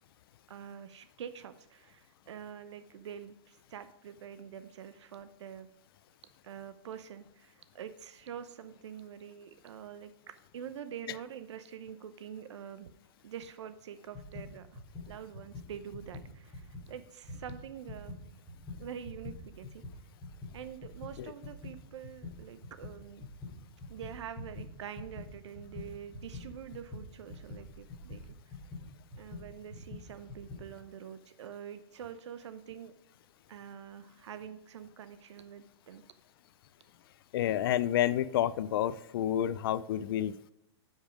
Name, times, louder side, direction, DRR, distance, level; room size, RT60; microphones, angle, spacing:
voice 1, 0.5-5.7 6.4-12.9 13.2-14.8 15.1-18.2 18.8-19.8 20.5-23.2 23.9-28.6 29.2-32.9 33.5-36.0, right 8 dB, 85° right, 11 dB, 0.7 m, -46 dB
sound 1, 14.1-16.9 17.2-30.7, left 2 dB, 5° left, 2.7 m, -45 dB
voice 2, 37.3-40.5, left 11 dB, 55° left, 16 dB, 0.4 m, -29 dB
10.0 x 5.4 x 5.0 m, 0.88 s
supercardioid pair, 165°, 14 cm